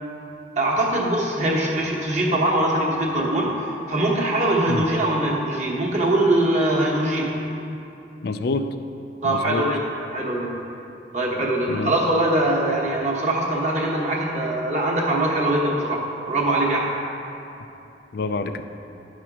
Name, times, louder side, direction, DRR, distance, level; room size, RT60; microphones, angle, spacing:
voice 1, 0.6-7.4 9.2-9.8 10.1-10.6 11.1-16.9, right 1 dB, 40° right, -2 dB, 1.1 m, -22 dB
voice 2, 8.2-8.7 9.2-9.6 11.7-11.9 18.1-18.6, left 3 dB, 55° left, 9 dB, 0.4 m, -26 dB
10.0 x 4.3 x 6.0 m, 2.8 s
head